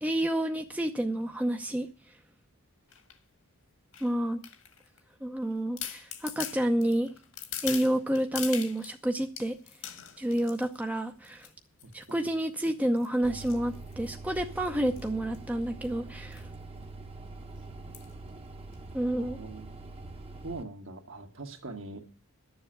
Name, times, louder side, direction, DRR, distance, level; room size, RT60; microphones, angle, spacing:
voice 1, 0.0-1.9 4.0-4.4 5.2-7.1 7.6-9.6 10.2-11.5 11.9-16.4 18.9-19.4, right 1 dB, 5° right, 5 dB, 0.7 m, -29 dB
sound 1, 2.9-3.2 3.9-5.0 5.4-5.5 5.8-9.0 9.4-10.8 11.2-11.5 11.8-12.1 12.6-14.4 14.9-15.1 15.3-15.4 15.6-15.9 16.3-16.5 16.8-16.9 17.9-18.2 18.7-18.8, left 9 dB, 70° left, 1.9 m, -41 dB
voice 2, 11.8-12.3 19.2-19.8 20.4-22.0, right 2 dB, 65° right, 4 dB, 1.9 m, -42 dB
sound 2, 13.2-20.6, right 3 dB, 25° right, 1.0 m, -44 dB
11.5 x 7.2 x 8.7 m, 0.38 s
head